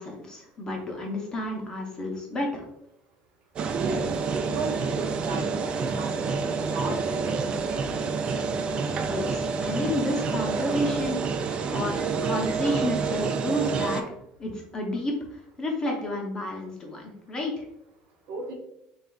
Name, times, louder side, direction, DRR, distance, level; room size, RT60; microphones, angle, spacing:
voice 1, 0.0-2.6 9.0-11.2 11.7-14.0 14.4-17.7, left 1 dB, 20° left, 0 dB, 0.7 m, -31 dB
sound 1, 3.6-14.0, right 5 dB, 30° right, 0.3 m, -28 dB
voice 2, 3.7-8.2 18.3-18.5, right 3 dB, 60° right, 1 dB, 1.0 m, -36 dB
6.7 x 2.4 x 2.3 m, 0.81 s
cardioid pair, 160°, 3 cm